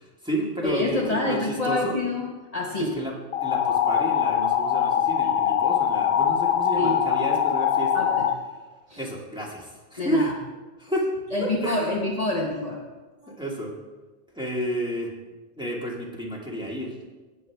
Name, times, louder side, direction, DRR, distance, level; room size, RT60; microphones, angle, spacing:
voice 1, 0.0-1.9 2.8-3.1 3.4-8.1 9.0-10.3 10.8-11.1 11.4-11.9 13.3-13.8 14.3-15.1 15.6-17.0, right 1 dB, 5° right, -3 dB, 1.8 m, -31 dB
voice 2, 0.6-3.0 6.8-7.0 7.9-8.3 8.9-9.0 10.0-10.3 11.3-12.8 13.2-13.3, left 2 dB, 35° left, -2 dB, 1.0 m, -27 dB
sound 1, 3.3-8.3, left 9 dB, 70° left, 0.8 m, -23 dB
17.0 x 6.9 x 3.4 m, 1.3 s
omnidirectional pair, 1.1 m